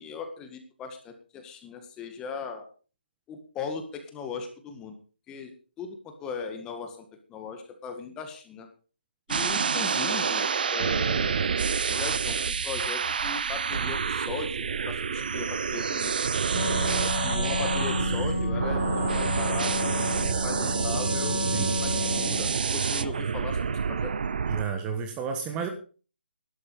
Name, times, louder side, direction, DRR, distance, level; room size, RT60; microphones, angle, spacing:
voice 1, 0.0-2.7 3.3-4.9 5.3-5.5 5.8-8.7 9.3-11.5 11.9-16.2 17.2-24.1, left 5 dB, 10° left, 6 dB, 1.8 m, -38 dB
sound 1, 9.3-24.6, right 6 dB, 55° right, 0.7 m, -28 dB
Wind instrument woodwind instrument, 16.5-22.6, left 5 dB, 70° left, 1.1 m, -32 dB
voice 2, 21.5-21.8 24.5-25.7, right 6 dB, 15° right, 5 dB, 1.4 m, -31 dB
12.0 x 12.0 x 5.1 m, 0.37 s
hypercardioid pair, 155°, 6 cm